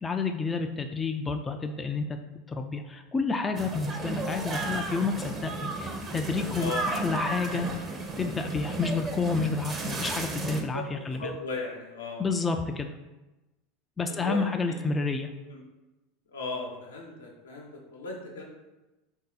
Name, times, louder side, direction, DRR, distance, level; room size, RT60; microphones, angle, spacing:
voice 1, 0.0-2.2 2.5-7.7 8.2-11.3 12.2-12.9 14.0-15.3, left 4 dB, 20° left, 5 dB, 0.3 m, -30 dB
sound 1, 3.6-10.6, right 2 dB, 30° right, 0.7 m, -34 dB
voice 2, 6.5-6.9 10.7-12.2 14.1-14.8 15.4-15.6 16.3-18.4, left 3 dB, 85° left, -1 dB, 0.8 m, -37 dB
3.7 x 2.7 x 3.9 m, 1.0 s
hypercardioid pair, 85°, 0 cm